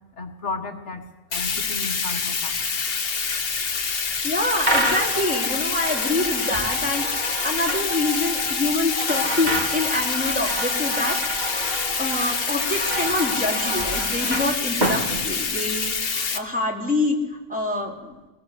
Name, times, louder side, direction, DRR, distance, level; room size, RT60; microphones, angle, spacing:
voice 1, 0.2-2.6 16.3-16.4, left 3 dB, 70° left, 4 dB, 1.7 m, -34 dB
Bathtub (filling or washing), 1.3-16.4, left 5 dB, 55° left, 1.3 m, -26 dB
voice 2, 4.2-11.5 12.0-18.2, left 2 dB, 5° right, -2 dB, 3.3 m, -26 dB
sound 1, 4.6-15.9, right 1 dB, 35° right, 2.3 m, -29 dB
23.0 x 20.0 x 6.6 m, 1.1 s
omnidirectional pair, 1.2 m